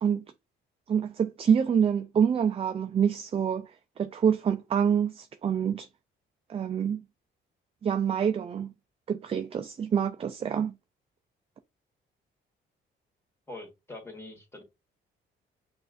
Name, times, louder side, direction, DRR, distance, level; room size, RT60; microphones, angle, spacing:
voice 1, 0.9-5.9 6.5-7.0 7.8-8.7 9.1-10.7, right 7 dB, 30° right, 0.3 m, -26 dB
voice 2, 13.5-14.6, left 2 dB, 15° left, 1.5 m, -43 dB
5.9 x 2.5 x 2.5 m
cardioid pair, 90°, 20 cm